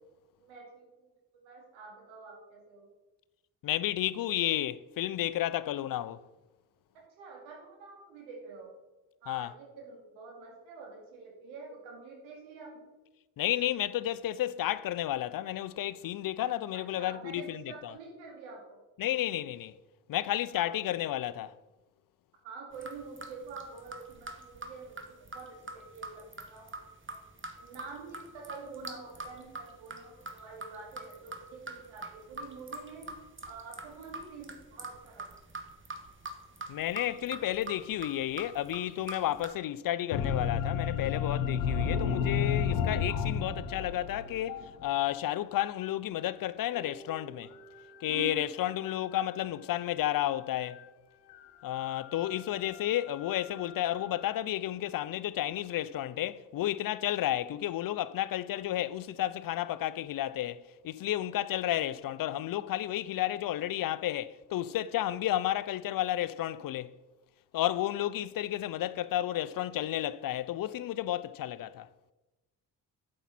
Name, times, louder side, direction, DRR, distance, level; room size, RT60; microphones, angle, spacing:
voice 1, 0.4-2.9 6.9-8.7 9.2-12.8 16.7-18.8 20.5-21.0 22.4-26.7 27.1-27.2 27.6-33.1 33.5-35.4 42.3-42.8 48.1-48.5, right 4 dB, 80° right, 2.6 m, -47 dB
voice 2, 3.6-6.2 9.3-9.5 13.4-17.9 19.0-19.7 20.1-21.5 36.7-44.6 44.8-47.5 48.0-50.8 51.6-66.9 67.5-71.9, left 13 dB, 50° left, 0.5 m, -32 dB
sound 1, 22.7-39.5, right 2 dB, 25° right, 1.5 m, -44 dB
sound 2, 40.1-45.5 46.7-47.8 48.2-48.3 50.7-50.8 51.3-54.3, left 7 dB, 80° left, 0.9 m, -33 dB
8.8 x 7.4 x 4.2 m
hypercardioid pair, 45°, 47 cm